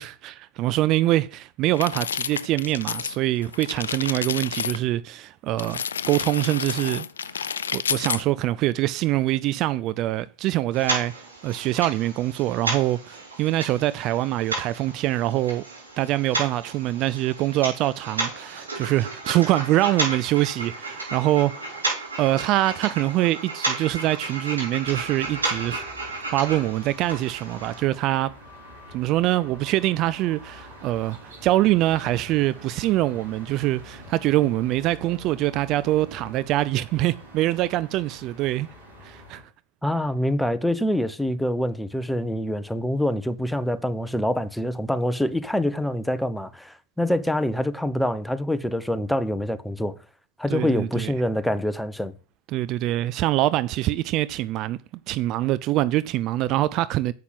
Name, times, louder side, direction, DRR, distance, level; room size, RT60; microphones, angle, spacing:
voice 1, 0.0-7.1 7.3-11.1 11.4-15.6 16.0-21.8 22.2-25.8 26.3-28.3 28.9-38.7 39.0-39.4 50.5-51.1 52.5-54.8 55.1-57.1, right 15 dB, 45° right, 0.4 m, -24 dB
sound 1, 1.7-3.2 3.4-4.8 5.6-8.2, left 7 dB, 80° left, 0.5 m, -30 dB
sound 2, 10.7-27.8, right 3 dB, 85° right, 5.4 m, -33 dB
sound 3, 24.8-39.4, equal, 65° right, 4.8 m, -46 dB
voice 2, 39.8-49.9 50.4-52.1, left 1 dB, ahead, 0.9 m, -25 dB
7.6 x 5.9 x 7.6 m
figure-of-eight pair, 85°, 0 cm